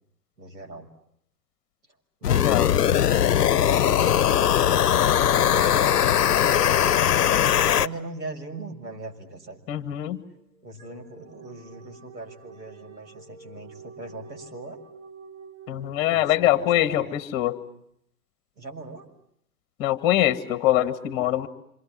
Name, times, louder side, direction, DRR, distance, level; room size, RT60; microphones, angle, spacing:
voice 1, 0.4-0.9 2.2-3.1 3.7-9.6 10.6-14.8 15.9-17.2 18.6-19.1 21.2-21.5, right 2 dB, 85° right, 2 dB, 6.6 m, -40 dB
sound 1, 2.2-7.9, left 10 dB, 65° left, 1.0 m, -20 dB
voice 2, 2.2-2.7 9.7-10.2 15.7-17.6 19.8-21.5, left 13 dB, 25° left, 11 dB, 2.0 m, -23 dB
sound 2, 10.1-16.5, right 5 dB, 55° right, 7.9 m, -48 dB
27.5 x 27.0 x 7.6 m, 0.72 s
hypercardioid pair, 135°, 50 cm